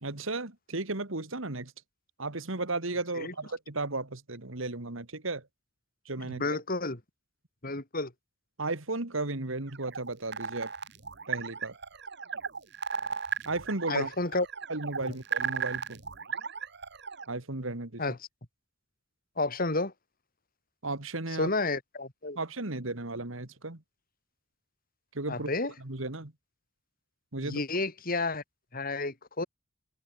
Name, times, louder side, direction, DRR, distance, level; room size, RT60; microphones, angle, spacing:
voice 1, 0.0-1.7 2.2-5.5 6.1-6.6 8.6-10.7 11.3-11.8 13.5-14.1 14.7-16.0 17.3-18.2 20.8-21.5 22.4-23.8 25.1-25.5 25.8-26.3 27.3-27.6, right 2 dB, 75° right, 2.4 m, -34 dB
voice 2, 6.2-7.0 7.6-8.1 13.9-14.5 15.0-15.1 18.0-18.2 19.4-19.9 21.4-22.4 25.3-25.7 27.4-28.4 28.7-29.5, left 2 dB, 45° left, 3.2 m, -31 dB
sound 1, 9.7-17.2, right 6 dB, 55° right, 2.2 m, -36 dB
head